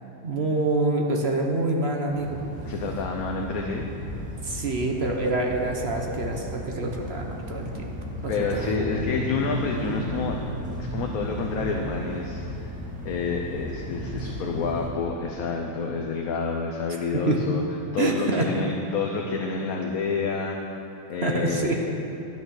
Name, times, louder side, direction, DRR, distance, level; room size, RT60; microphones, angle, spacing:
voice 1, 0.2-2.4 4.4-7.9 8.2-8.8 17.1-17.4 18.0-18.5 21.2-21.8, right 2 dB, 45° right, 1 dB, 1.1 m, -26 dB
sound 1, 2.1-14.9, equal, 5° right, 1.4 m, -34 dB
voice 2, 2.6-3.9 8.3-10.4 10.9-12.7 13.0-17.6 17.9-20.8 21.1-21.8, left 4 dB, 65° left, 1 dB, 1.2 m, -29 dB
12.0 x 9.0 x 6.3 m, 3.0 s
omnidirectional pair, 1.8 m